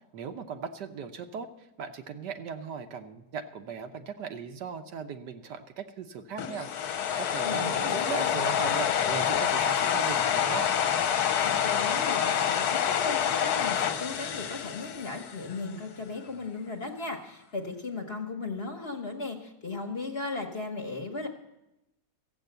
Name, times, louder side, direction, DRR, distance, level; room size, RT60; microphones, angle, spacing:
voice 1, 0.1-1.5 1.8-10.7, right 6 dB, 70° right, 7 dB, 1.4 m, -38 dB
sound 1, 6.4-15.6, left 9 dB, 60° left, 1.2 m, -27 dB
voice 2, 7.4-8.3 11.4-21.3, left 3 dB, 40° left, 3 dB, 1.2 m, -36 dB
15.0 x 7.9 x 7.9 m, 0.91 s
omnidirectional pair, 2.0 m